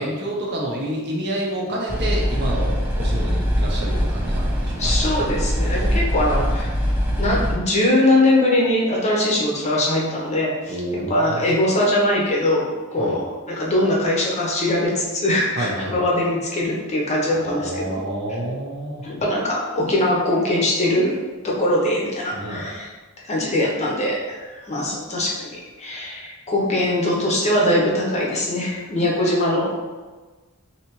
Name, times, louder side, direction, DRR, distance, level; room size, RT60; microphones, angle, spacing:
voice 1, 0.0-5.0 10.7-11.3 13.0-13.2 15.6-15.9 17.3-19.1 22.3-22.6, right 1 dB, 50° right, -2 dB, 0.7 m, -28 dB
sound 1, 1.9-7.5, equal, 10° right, 0.5 m, -22 dB
voice 2, 4.8-6.7 7.2-18.0 19.0-21.2 21.4-22.9 23.2-29.8, left 1 dB, 30° left, -3 dB, 0.7 m, -21 dB
3.2 x 2.7 x 2.9 m, 1.3 s
head